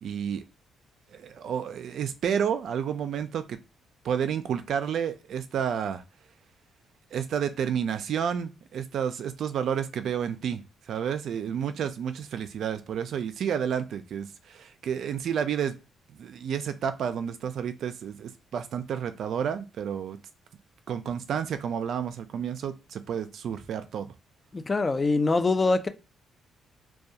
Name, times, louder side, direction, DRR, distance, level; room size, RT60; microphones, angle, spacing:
voice 1, 0.0-0.4 1.1-3.6 4.0-6.0 7.1-10.6 10.9-15.8 16.1-20.2 20.9-24.1, right 8 dB, 70° right, 0.3 m, -30 dB
voice 2, 24.5-25.9, left 3 dB, 25° left, 0.4 m, -24 dB
2.3 x 2.2 x 2.7 m
cardioid pair, 90°, 0 cm